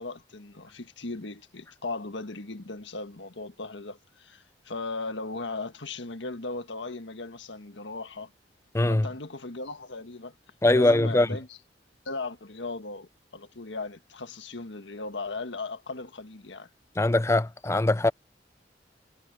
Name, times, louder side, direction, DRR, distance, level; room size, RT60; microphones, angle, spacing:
voice 1, 0.0-8.3 8.9-10.3 10.7-11.5 12.0-16.7, left 3 dB, 85° left, 1.6 m, -37 dB
voice 2, 8.7-9.1 10.6-11.3 17.0-18.1, left 2 dB, 15° left, 0.5 m, -22 dB
head